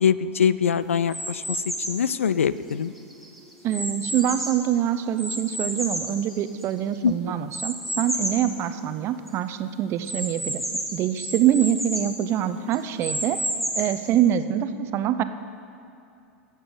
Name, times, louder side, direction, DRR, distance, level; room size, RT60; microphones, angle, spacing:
voice 1, 0.0-2.9 7.0-7.1, left 7 dB, 80° left, 16 dB, 0.3 m, -23 dB
sound 1, 1.1-2.1 2.7-4.7 5.2-6.9 7.5-8.5 8.9-9.0 9.3-9.4 10.1-12.1 12.7-14.1, right 1 dB, ahead, 1.3 m, -30 dB
voice 2, 3.6-10.7 10.9-13.4 13.7-15.2, right 10 dB, 35° right, 11 dB, 0.6 m, -25 dB
19.0 x 8.0 x 3.9 m, 2.6 s
figure-of-eight pair, 95°, 7 cm